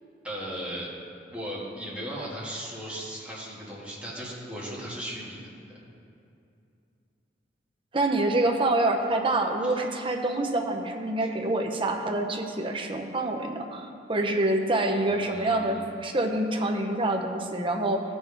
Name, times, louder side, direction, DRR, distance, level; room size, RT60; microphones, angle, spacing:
voice 1, 0.2-0.9 1.3-5.4 5.7-5.8 9.6-9.7 11.2-11.3 15.1-15.8, equal, 5° right, -7 dB, 2.0 m, -37 dB
voice 2, 7.9-18.0, right 2 dB, 30° right, 2 dB, 0.7 m, -26 dB
15.0 x 5.5 x 3.4 m, 2.6 s
head